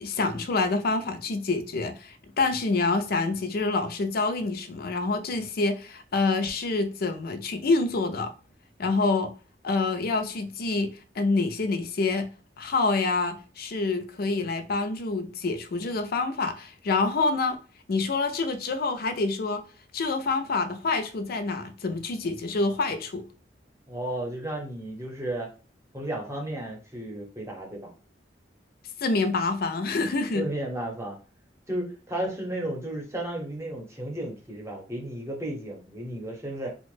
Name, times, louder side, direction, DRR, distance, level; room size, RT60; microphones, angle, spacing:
voice 1, 0.0-8.3 8.8-9.3 9.6-10.9 11.2-12.3 12.6-17.6 17.9-19.6 19.9-23.2 29.0-30.4, left 3 dB, 55° left, 0.5 m, -27 dB
voice 2, 23.9-25.5 25.9-27.9 30.3-31.2 31.7-36.7, right 1 dB, 15° right, 0.8 m, -33 dB
2.9 x 2.1 x 3.1 m
head